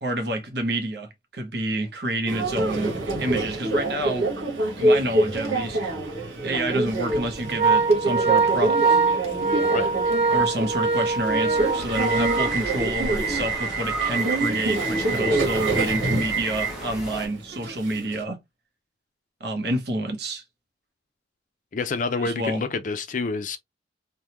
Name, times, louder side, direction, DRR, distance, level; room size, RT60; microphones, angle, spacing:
voice 1, 0.0-4.3 4.8-5.8 6.4-9.0 10.3-18.4 19.4-20.4 22.2-22.6, right 1 dB, 55° right, 1.0 m, -28 dB
Subway metro underground, 2.3-18.2, right 2 dB, 80° right, 1.2 m, -26 dB
Organ, 5.3-5.5 5.9-6.0 6.9-13.2, right 4 dB, 35° right, 0.7 m, -23 dB
sound 1, 6.4-7.9 9.7-17.3, right 2 dB, 5° right, 1.2 m, -37 dB
voice 2, 21.7-23.6, left 4 dB, 40° left, 0.4 m, -28 dB
3.5 x 2.2 x 2.9 m
head